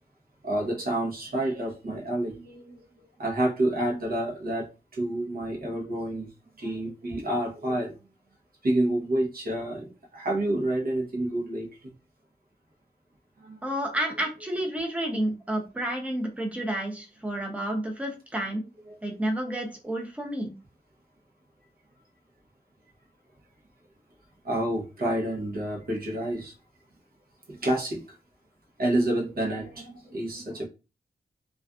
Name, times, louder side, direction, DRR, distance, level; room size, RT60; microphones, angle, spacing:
voice 1, 0.4-2.8 3.2-4.7 4.9-6.3 6.6-7.9 8.6-11.9 13.4-13.6 18.9-19.2 24.4-26.5 27.5-28.0 28.8-30.7, right 1 dB, 55° right, 0.8 m, -29 dB
voice 2, 13.6-18.6 19.0-20.5, right 1 dB, 5° right, 0.6 m, -30 dB
2.4 x 2.4 x 2.3 m
wide cardioid pair, 85°, 18 cm